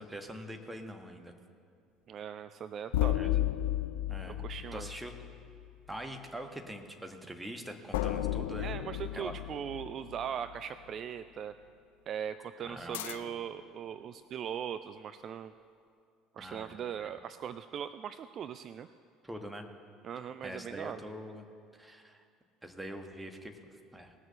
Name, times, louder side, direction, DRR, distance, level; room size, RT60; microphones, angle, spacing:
voice 1, 0.0-1.3 3.1-3.3 4.1-4.4 4.7-5.1 5.9-8.8 9.1-9.3 12.6-13.1 16.4-17.1 19.2-19.6 20.4-21.4 21.7-22.2 22.6-24.1, equal, 10° right, 5 dB, 1.4 m, -44 dB
voice 2, 2.1-3.3 4.3-4.9 8.6-11.5 12.1-15.5 16.3-18.9 20.0-21.0, right 8 dB, 45° right, 12 dB, 0.3 m, -40 dB
sound 1, 2.9-5.7 7.9-10.6 12.9-13.6, left 13 dB, 70° left, 0.3 m, -33 dB
19.0 x 6.4 x 6.5 m, 2.4 s
figure-of-eight pair, 60°, 0 cm